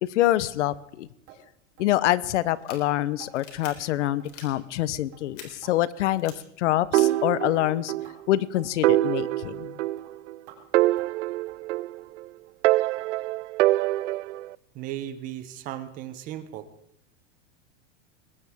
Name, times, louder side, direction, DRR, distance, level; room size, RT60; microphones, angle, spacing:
voice 1, 0.0-1.1 1.8-7.9 8.3-9.8, left 14 dB, 70° left, 19 dB, 0.9 m, -26 dB
sound 1, 1.3-1.4 1.8-1.9 2.3-2.4 2.7-2.8 3.2-3.3 3.7-3.8 4.2-4.4 4.7-4.9 5.1-5.7 6.1-6.4 6.6-6.8 7.1-7.3 7.5-7.7 8.0-8.2 8.5-8.7 9.0-9.2 9.5-9.7 10.0-10.1 10.5-10.6 11.0-11.2 11.5-11.6 12.0-12.1 12.5-12.6 13.0-13.1 13.5-13.6, right 10 dB, 40° right, 3.9 m, -51 dB
Airsoft Pistol Handling, 2.5-2.8 3.3-3.7 4.2-4.5 5.3-5.5 6.1-6.3 7.0-7.1, left 8 dB, 45° left, 3.8 m, -43 dB
sound 2, 6.9-8.1 8.4-8.5 8.8-10.4 10.7-12.2 12.6-14.5, right 16 dB, 75° right, 0.5 m, -24 dB
voice 2, 14.7-16.7, right 12 dB, 20° right, 12 dB, 0.7 m, -36 dB
20.5 x 18.0 x 3.6 m, 0.78 s
supercardioid pair, 175°, 37 cm